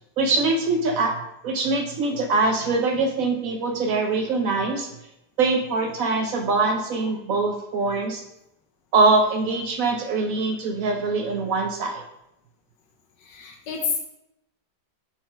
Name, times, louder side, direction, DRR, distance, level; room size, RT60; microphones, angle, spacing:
voice 1, 0.2-1.2 1.4-4.9 5.4-8.2 8.9-12.0, right 3 dB, 65° right, 5 dB, 0.9 m, -23 dB
voice 2, 13.2-14.0, left 5 dB, 85° left, 1 dB, 1.6 m, -29 dB
4.6 x 4.4 x 5.6 m, 0.86 s
omnidirectional pair, 1.9 m